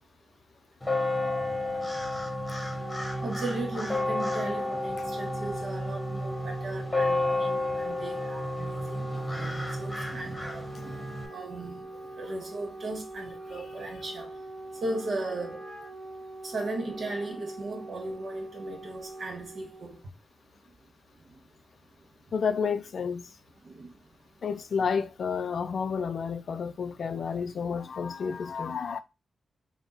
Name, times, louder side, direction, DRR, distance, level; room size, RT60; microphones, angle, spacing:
sound 1, 0.8-11.3, left 2 dB, 20° left, 1.0 m, -31 dB
Wind instrument woodwind instrument, 2.5-20.0, right 2 dB, 35° right, 0.8 m, -43 dB
voice 1, 3.2-11.9 12.2-14.3 14.8-15.6 16.4-20.0 23.6-23.9, right 2 dB, 60° right, 1.5 m, -37 dB
voice 2, 22.3-23.2 24.4-29.0, left 6 dB, 70° left, 0.4 m, -30 dB
3.6 x 2.3 x 3.9 m
cardioid pair, 80°, 0 cm